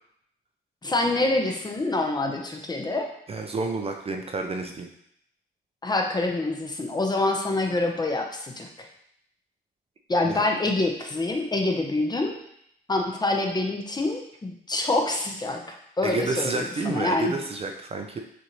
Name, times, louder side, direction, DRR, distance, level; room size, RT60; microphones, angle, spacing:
voice 1, 0.8-3.1 5.8-8.9 10.1-12.3 12.9-17.4, left 2 dB, 20° left, 2 dB, 0.7 m, -26 dB
voice 2, 3.3-4.9 10.3-10.4 16.0-18.2, right 3 dB, 30° right, 3 dB, 0.5 m, -30 dB
6.1 x 2.6 x 3.0 m, 0.73 s
cardioid pair, 90°, 20 cm